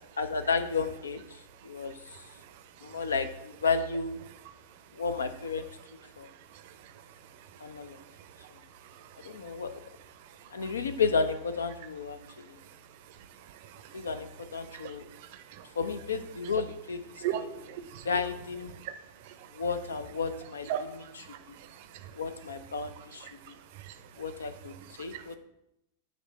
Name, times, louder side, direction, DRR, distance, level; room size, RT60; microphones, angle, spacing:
voice 1, 0.2-2.3 2.8-4.3 4.9-5.7 6.2-6.3 7.6-8.0 8.5-8.6 9.2-9.7 10.5-12.6 13.9-15.0 15.8-17.5 18.0-18.8 19.5-21.6 22.1-23.6 24.2-25.4, left 5 dB, 70° left, 11 dB, 0.4 m, -33 dB
voice 2, 2.1-2.5 2.8-3.0 6.2-6.9 7.9-8.0 8.4-8.5 8.8-9.6 13.4-14.0 14.7-15.6 17.1-18.1 18.8-18.9 19.2-19.5 20.7-22.1 23.2-24.0 25.1-25.2, right 10 dB, 50° right, 10 dB, 0.5 m, -40 dB
7.7 x 3.1 x 4.1 m, 0.84 s
figure-of-eight pair, 90°, 0 cm